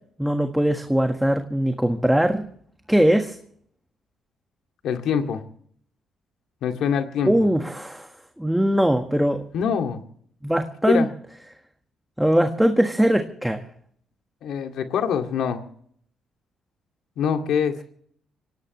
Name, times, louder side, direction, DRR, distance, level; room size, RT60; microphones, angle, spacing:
voice 1, 0.2-2.4 2.9-3.4 7.2-8.1 8.4-9.4 10.4-11.1 12.2-13.6, equal, 5° right, 5 dB, 1.5 m, -21 dB
voice 2, 4.8-5.4 6.6-7.5 9.5-10.0 10.9-11.1 14.4-15.6 17.2-17.8, left 7 dB, 75° left, 5 dB, 2.1 m, -24 dB
25.0 x 18.0 x 3.2 m, 0.64 s
cardioid pair, 90°, 0 cm